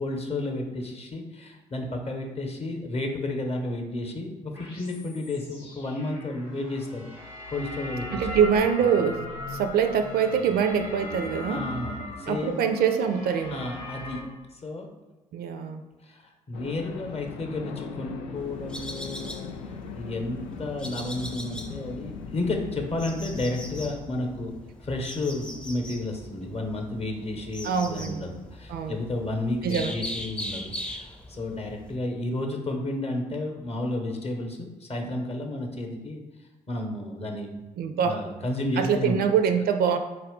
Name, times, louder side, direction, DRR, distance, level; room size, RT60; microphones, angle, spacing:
voice 1, 0.0-7.1 7.5-8.2 11.5-12.6 13.5-14.2 14.6-14.9 16.0-19.6 20.0-24.5 24.8-36.2 36.7-37.6 38.0-39.2, left 2 dB, 35° left, 3 dB, 0.8 m, -32 dB
sound 1, 4.5-14.2, left 1 dB, 90° left, 1.1 m, -39 dB
voice 2, 8.1-11.7 12.3-13.6 15.3-15.8 27.6-28.2 28.7-29.0 29.6-29.9 37.8-38.2 38.8-40.0, right 7 dB, 55° right, 7 dB, 0.4 m, -24 dB
sound 2, 16.5-24.0, left 5 dB, 70° left, 0.4 m, -39 dB
sound 3, 18.4-32.0, left 1 dB, 5° left, 0.5 m, -41 dB
4.3 x 2.4 x 3.6 m, 1.1 s
hypercardioid pair, 45°, 19 cm